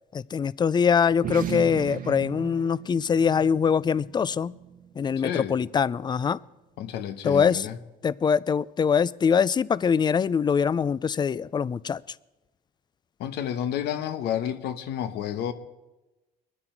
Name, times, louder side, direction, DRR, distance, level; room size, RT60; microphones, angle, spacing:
voice 1, 0.1-4.5 5.0-6.4 7.2-7.7 8.0-12.0, left 6 dB, 25° left, 0.4 m, -23 dB
sound 1, 1.1-5.9, right 8 dB, 55° right, 1.2 m, -37 dB
voice 2, 5.2-5.5 6.8-7.8 13.2-15.5, left 10 dB, 80° left, 1.2 m, -30 dB
23.0 x 9.8 x 4.6 m
cardioid pair, 110°, 17 cm